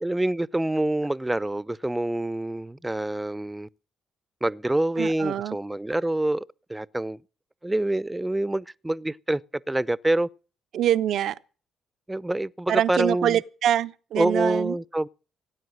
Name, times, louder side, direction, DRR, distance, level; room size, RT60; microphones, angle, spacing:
voice 1, 0.0-3.7 4.4-6.4 6.7-7.2 7.6-9.4 9.7-10.3 12.1-13.4 14.2-15.1, right 1 dB, 15° right, 0.6 m, -26 dB
voice 2, 5.0-5.6 10.7-11.4 12.7-14.8, right 10 dB, 70° right, 0.7 m, -24 dB
18.0 x 9.4 x 6.4 m
hypercardioid pair, 50°, 0 cm